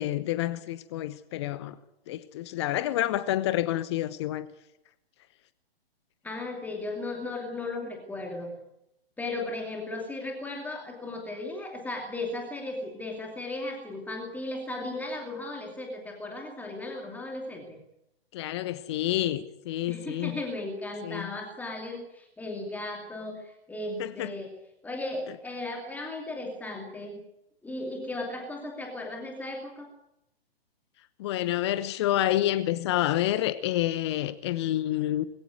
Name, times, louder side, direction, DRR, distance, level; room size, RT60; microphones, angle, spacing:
voice 1, 0.0-1.8 2.1-4.5 18.3-20.4 21.0-21.3 24.0-24.3 31.2-35.2, left 14 dB, 25° left, 1.0 m, -28 dB
voice 2, 6.2-8.5 9.2-17.8 19.9-24.5 24.8-27.2 27.6-29.9, left 2 dB, 5° left, 2.6 m, -36 dB
21.5 x 16.5 x 9.5 m
figure-of-eight pair, 125°, 31 cm